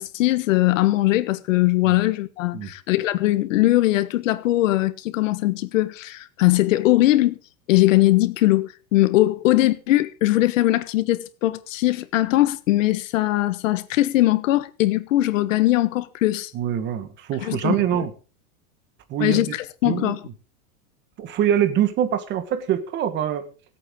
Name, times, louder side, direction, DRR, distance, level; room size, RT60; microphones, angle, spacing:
voice 1, 0.0-7.4 7.7-16.5 17.4-18.1 19.2-20.2, left 16 dB, 60° left, 1.5 m, -20 dB
voice 2, 16.5-18.1 19.1-19.4 19.8-20.1 21.2-23.5, right 10 dB, 25° right, 1.5 m, -24 dB
25.0 x 8.7 x 3.8 m
supercardioid pair, 155°, 43 cm